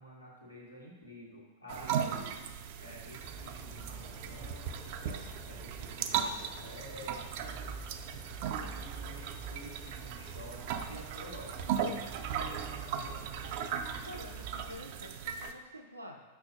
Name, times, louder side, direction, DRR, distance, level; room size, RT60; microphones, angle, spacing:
voice 1, 0.0-2.5 2.8-7.9 8.6-13.3, equal, 90° left, -4 dB, 1.3 m, -50 dB
sound 1, 1.7-15.5, right 8 dB, 50° right, 0.4 m, -38 dB
sound 2, 3.2-14.8, right 3 dB, ahead, 0.6 m, -48 dB
voice 2, 14.1-16.2, left 1 dB, 90° right, 1 dB, 0.7 m, -48 dB
7.2 x 5.6 x 2.5 m, 1.2 s
figure-of-eight pair, 90°, 0 cm